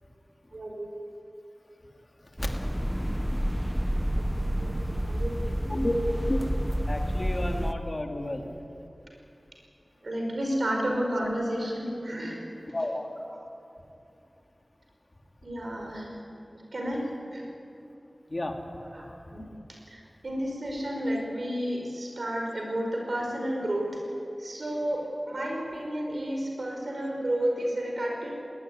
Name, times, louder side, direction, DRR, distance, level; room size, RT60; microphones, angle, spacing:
voice 1, 0.5-0.9 4.6-4.7 5.1-5.8 10.0-12.4 15.4-16.1 16.7-17.4 18.9-19.1 19.3-19.4 19.9-23.9 24.4-28.3, equal, 75° right, 0 dB, 5.5 m, -31 dB
sound 1, 2.4-7.7, equal, ahead, 0.9 m, -29 dB
voice 2, 6.9-8.5 12.7-13.1 18.3-18.5, left 1 dB, 45° left, 3 dB, 2.7 m, -31 dB
21.5 x 18.5 x 9.7 m, 2.7 s
wide cardioid pair, 45°, 0 cm